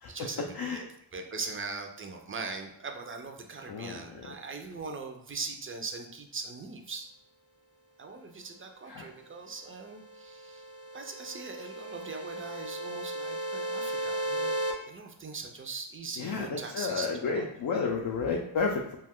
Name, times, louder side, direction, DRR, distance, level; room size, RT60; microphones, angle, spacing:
voice 1, 0.1-0.9 1.1-7.1 8.0-14.6 14.9-17.5 17.7-18.0, right 4 dB, 25° right, 3 dB, 0.4 m, -41 dB
voice 2, 3.7-4.3 8.9-9.1 16.2-19.0, left 4 dB, 50° left, -1 dB, 0.4 m, -32 dB
sound 1, 9.8-14.7, right 1 dB, 65° right, 0.7 m, -35 dB
2.4 x 2.3 x 3.5 m, 0.81 s
wide cardioid pair, 80°, 50 cm